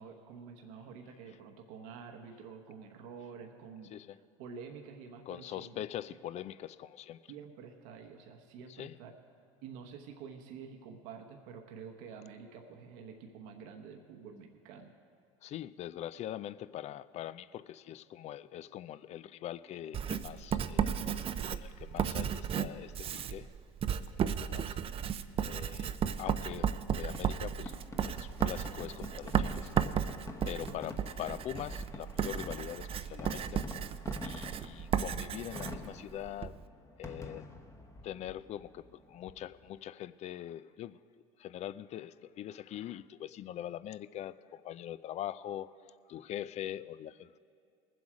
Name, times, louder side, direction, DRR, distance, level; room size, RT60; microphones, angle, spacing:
voice 1, 0.0-6.2 7.3-9.1 9.6-14.9 30.6-30.8, right 6 dB, 70° right, 3 dB, 1.1 m, -49 dB
voice 2, 5.3-7.2 8.8-9.0 15.4-23.5 24.1-24.8 25.4-25.9 26.2-27.7 28.1-29.7 30.5-33.7 34.2-36.6 37.0-37.5 38.0-41.0 41.4-45.7 46.1-47.4, left 11 dB, 40° left, 17 dB, 0.4 m, -43 dB
Writing, 19.9-36.6, right 8 dB, 35° right, 0.5 m, -34 dB
Fireworks, 26.3-39.8, left 2 dB, 15° left, 1.0 m, -47 dB
20.0 x 7.8 x 5.0 m, 2.5 s
supercardioid pair, 100°, 17 cm